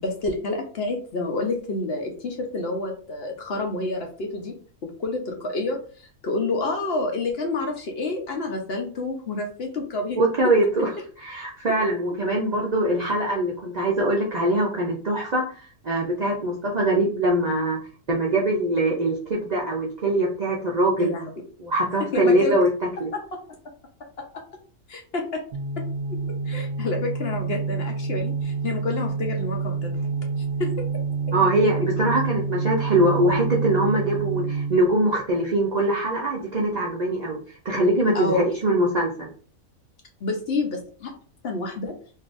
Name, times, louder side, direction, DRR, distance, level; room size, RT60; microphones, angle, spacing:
voice 1, 0.0-4.5 4.8-10.2 21.0-21.3 22.1-22.5 23.1-23.4 24.2-24.4 24.9-25.4 25.8-25.9 26.5-29.9 30.6-30.7 38.1-38.5 40.2-41.1 41.4-41.9, left 3 dB, 60° left, 2 dB, 0.8 m, -28 dB
voice 2, 10.2-10.9 11.2-17.8 18.1-21.1 21.6-23.1 31.3-37.4 37.6-39.3, right 1 dB, 55° right, -3 dB, 0.5 m, -22 dB
sound 1, 25.5-34.9, right 5 dB, 70° right, 0.9 m, -28 dB
3.7 x 2.6 x 2.5 m, 0.42 s
omnidirectional pair, 1.4 m